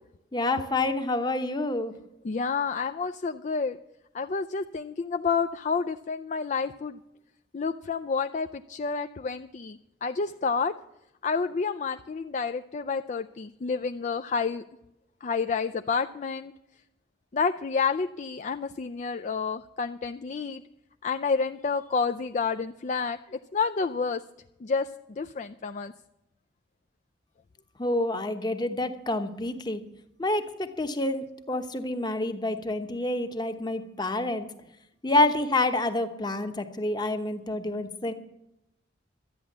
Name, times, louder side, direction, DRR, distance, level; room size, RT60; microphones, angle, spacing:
voice 1, 0.3-1.9 27.8-29.8 30.2-34.5 35.0-38.1, left 2 dB, 25° left, 7 dB, 1.0 m, -28 dB
voice 2, 2.2-3.8 4.1-7.0 7.5-10.7 11.2-14.6 15.2-16.5 17.3-20.6 21.0-24.2 24.6-25.9, left 5 dB, 40° left, 7 dB, 0.4 m, -29 dB
12.5 x 9.4 x 7.3 m, 0.86 s
head